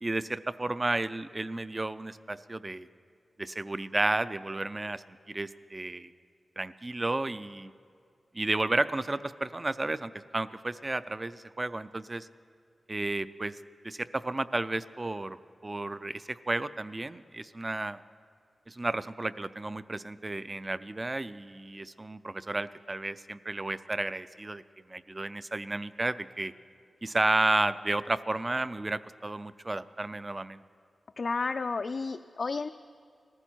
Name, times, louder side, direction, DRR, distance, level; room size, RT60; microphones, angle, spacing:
voice 1, 0.0-2.9 3.4-6.1 6.6-7.7 8.3-12.3 12.9-13.6 13.8-15.4 15.6-18.0 18.7-24.6 24.9-26.5 27.0-30.6, right 2 dB, 25° right, 15 dB, 0.4 m, -32 dB
voice 2, 31.2-32.7, left 4 dB, 55° left, 7 dB, 0.3 m, -31 dB
19.0 x 14.5 x 4.5 m, 2.3 s
wide cardioid pair, 105°, 0 cm